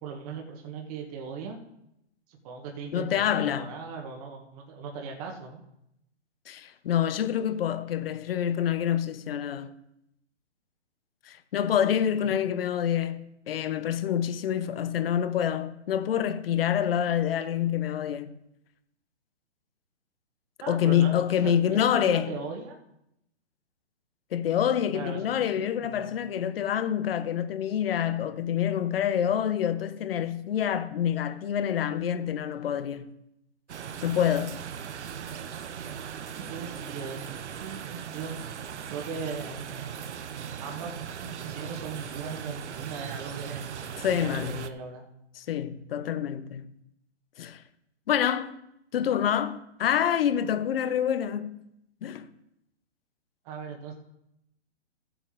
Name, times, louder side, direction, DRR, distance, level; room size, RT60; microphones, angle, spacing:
voice 1, 0.0-1.6 2.3-5.6 12.2-12.4 20.6-22.8 24.9-26.1 36.3-38.3 38.9-39.6 40.6-43.6 44.1-45.0 53.4-53.9, right 5 dB, 35° right, 1.7 m, -38 dB
voice 2, 2.9-3.7 6.5-9.7 11.3-18.3 20.7-22.3 24.3-33.1 34.0-34.6 44.0-44.6 45.4-46.7 47.4-47.6 48.1-48.5 48.9-51.6 52.0-52.3, left 9 dB, 55° left, 1.0 m, -27 dB
sound 1, 33.7-44.7, right 8 dB, 75° right, 0.9 m, -39 dB
14.0 x 8.1 x 3.9 m
hypercardioid pair, 150°, 35 cm